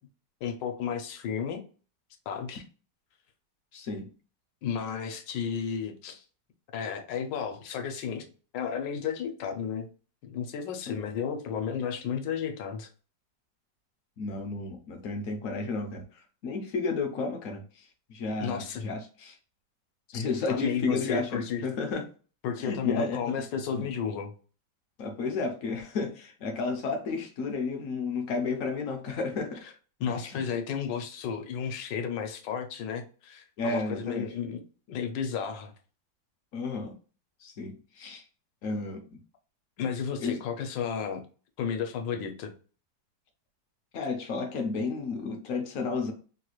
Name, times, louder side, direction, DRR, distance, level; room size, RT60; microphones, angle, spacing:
voice 1, 0.4-1.6 2.3-2.6 4.6-6.2 6.7-8.3 8.5-9.9 10.2-12.9 18.4-18.9 20.1-20.2 20.5-21.6 22.4-24.3 30.0-34.6 34.9-35.7 39.8-41.2 41.6-42.5, left 7 dB, 85° left, 1.3 m, -33 dB
voice 2, 3.7-4.1 10.9-11.0 14.2-19.4 20.1-22.1 22.6-23.5 23.8-23.9 25.0-29.6 30.1-30.5 33.6-34.3 36.5-36.9 37.4-38.3 38.6-39.0 40.2-40.4 43.9-46.1, left 4 dB, 70° left, 0.8 m, -32 dB
3.2 x 2.3 x 2.9 m
omnidirectional pair, 1.9 m